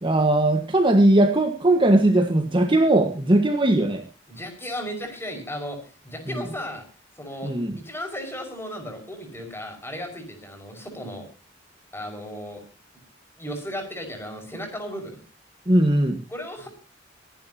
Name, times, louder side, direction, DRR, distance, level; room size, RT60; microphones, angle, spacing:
voice 1, 0.0-4.0 7.4-7.7 15.7-16.2, right 1 dB, 25° right, 5 dB, 1.5 m, -19 dB
voice 2, 4.3-5.8 6.0-6.8 7.2-7.5 7.8-11.3 11.9-12.6 13.4-15.2 16.3-16.7, equal, 15° left, 5 dB, 5.5 m, -35 dB
24.5 x 11.0 x 2.9 m, 0.34 s
head